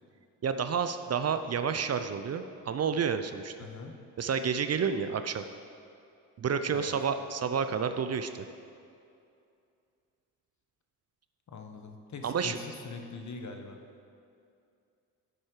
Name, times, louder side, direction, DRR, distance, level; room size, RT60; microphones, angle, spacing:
voice 1, 0.4-3.5 4.2-5.4 6.4-8.4 12.2-12.6, right 6 dB, 40° right, 9 dB, 0.6 m, -30 dB
voice 2, 3.6-3.9 6.7-6.9 11.5-13.8, left 4 dB, 50° left, 4 dB, 1.2 m, -42 dB
10.0 x 7.6 x 4.8 m, 2.5 s
supercardioid pair, 55°, 38 cm